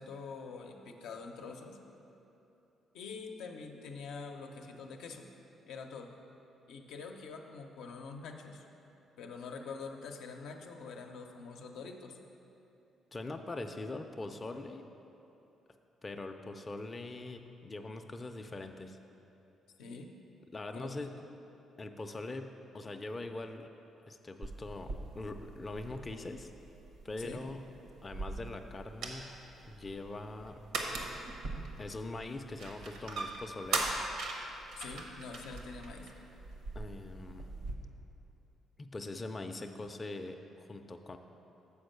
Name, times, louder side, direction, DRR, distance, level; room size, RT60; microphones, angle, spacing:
voice 1, 0.0-1.8 2.9-5.3 5.7-6.1 6.7-8.6 9.2-12.2 19.8-20.1 20.7-21.1 27.2-27.4 34.7-36.1, left 4 dB, 85° left, 3 dB, 0.6 m, -45 dB
voice 2, 13.1-14.8 16.0-19.0 20.5-21.1 21.8-23.7 24.1-26.5 27.0-27.6 28.0-29.3 29.7-30.6 31.8-33.9 36.7-37.5 38.8-41.2, left 2 dB, 25° left, 5 dB, 0.4 m, -42 dB
sound 1, 24.4-37.7, right 3 dB, 85° right, 0.9 m, -41 dB
7.0 x 4.5 x 6.5 m, 2.9 s
cardioid pair, 90°, 0 cm